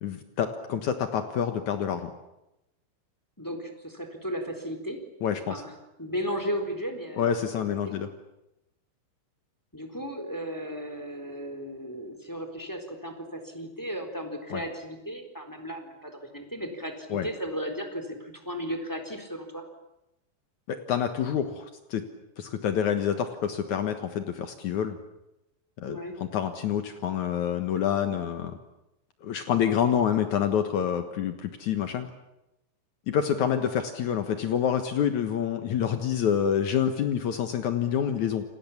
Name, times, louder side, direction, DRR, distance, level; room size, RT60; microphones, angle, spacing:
voice 1, 0.0-2.1 5.2-5.6 7.2-8.1 14.5-14.6 17.1-17.3 20.7-22.0 22.4-25.0 25.8-28.6 29.2-32.1 33.1-38.4, left 8 dB, 85° left, 7 dB, 1.6 m, -27 dB
voice 2, 3.4-5.0 5.5-5.7 6.0-7.4 7.9-8.0 9.7-19.6 25.8-26.1, equal, 5° left, 5 dB, 3.0 m, -35 dB
29.0 x 27.5 x 7.3 m, 0.91 s
omnidirectional pair, 5.7 m